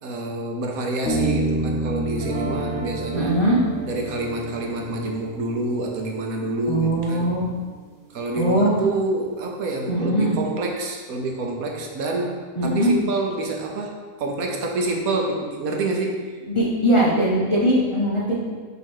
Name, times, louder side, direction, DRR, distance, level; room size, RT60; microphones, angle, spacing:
voice 1, 0.0-3.3 3.9-7.3 8.1-16.2, right 2 dB, 70° right, 1 dB, 1.2 m, -27 dB
Bass guitar, 1.1-4.6, right 1 dB, 55° left, 1.2 m, -27 dB
sound 1, 2.1-8.2, right 4 dB, 50° right, 1.3 m, -37 dB
voice 2, 3.1-3.6 6.7-7.4 8.3-8.7 9.9-10.4 12.6-12.9 16.5-18.3, right 1 dB, 25° left, -7 dB, 0.8 m, -20 dB
5.9 x 3.1 x 5.4 m, 1.5 s
omnidirectional pair, 1.6 m